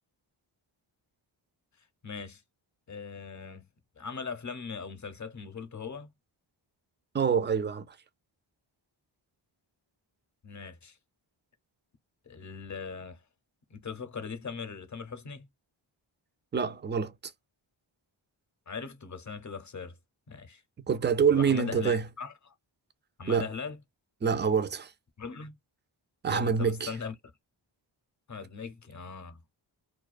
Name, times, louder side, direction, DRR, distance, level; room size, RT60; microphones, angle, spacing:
voice 1, 2.0-2.4 2.9-3.7 4.0-6.1 10.4-11.0 12.3-13.2 13.7-15.5 18.7-20.0 20.3-20.6 21.3-22.5 23.2-23.8 25.2-25.6 26.3-27.1 28.3-29.4, left 5 dB, 35° left, 0.6 m, -39 dB
voice 2, 7.1-7.8 16.5-17.1 20.9-22.0 23.3-23.5 24.2-24.9 26.2-26.9, right 6 dB, 25° right, 0.3 m, -26 dB
2.3 x 2.2 x 2.4 m
wide cardioid pair, 85°, 49 cm